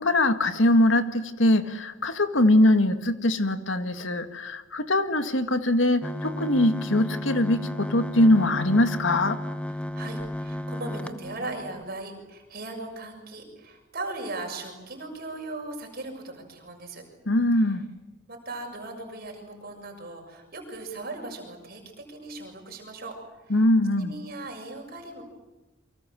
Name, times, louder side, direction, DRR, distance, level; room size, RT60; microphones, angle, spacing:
voice 1, 0.0-9.4 17.3-17.8 23.5-24.1, left 1 dB, 75° left, 9 dB, 1.9 m, -22 dB
sound 1, 6.0-11.9, left 1 dB, 5° left, 0.8 m, -33 dB
voice 2, 9.7-17.0 18.3-23.2 23.4-23.6 24.0-25.2, right 2 dB, 50° right, 2 dB, 6.8 m, -38 dB
29.0 x 24.5 x 7.6 m, 1.1 s
head